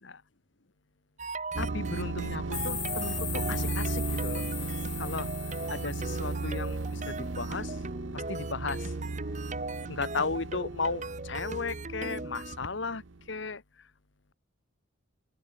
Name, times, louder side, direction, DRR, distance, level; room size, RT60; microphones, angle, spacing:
sound 1, 1.2-12.6, right 3 dB, 35° right, 2.7 m, -39 dB
sound 2, 1.5-13.2, right 3 dB, 70° right, 0.8 m, -36 dB
voice 1, 1.6-4.5 5.0-5.3 5.7-7.8 8.1-8.9 9.9-13.0 13.3-13.9, left 4 dB, 65° left, 1.2 m, -35 dB
sound 3, 2.5-6.9, left 11 dB, 25° left, 1.5 m, -39 dB
open air
head